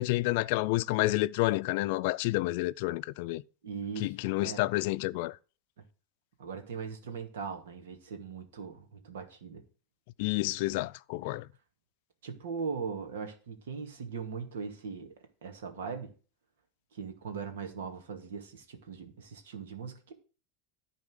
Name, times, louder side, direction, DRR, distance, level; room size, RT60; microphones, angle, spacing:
voice 1, 0.0-3.4 4.0-5.4 10.2-11.5, left 19 dB, 65° left, 0.5 m, -29 dB
voice 2, 3.6-4.1 4.4-4.7 6.4-9.6 12.2-15.1 15.4-16.1 16.9-20.1, right 5 dB, 85° right, 2.2 m, -39 dB
11.0 x 4.2 x 7.9 m
supercardioid pair, 125°, 0 cm